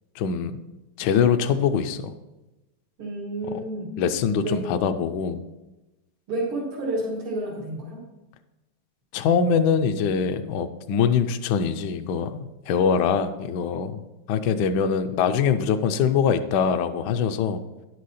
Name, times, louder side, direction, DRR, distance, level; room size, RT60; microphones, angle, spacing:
voice 1, 0.2-0.5 1.0-2.1 4.0-5.4 9.1-13.9 14.3-17.6, left 6 dB, 70° left, 9 dB, 1.1 m, -23 dB
voice 2, 3.0-3.9 4.4-4.6 6.3-8.0, right 1 dB, 90° right, -4 dB, 2.6 m, -30 dB
10.5 x 6.5 x 4.1 m, 1.1 s
omnidirectional pair, 2.3 m